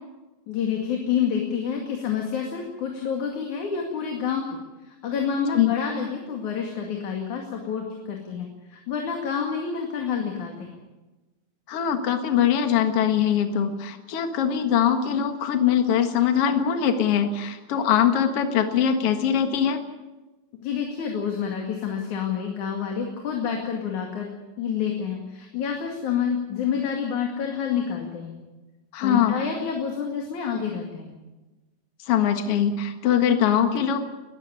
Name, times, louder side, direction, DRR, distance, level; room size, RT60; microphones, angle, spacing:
voice 1, 0.5-4.6 4.9-10.8 20.6-24.3 24.6-28.4 29.0-31.2, left 7 dB, 75° left, 1 dB, 3.7 m, -28 dB
voice 2, 11.7-19.8 28.9-29.4 32.1-34.1, left 8 dB, 55° left, 7 dB, 2.4 m, -22 dB
21.0 x 15.0 x 9.8 m, 1.1 s
omnidirectional pair, 3.5 m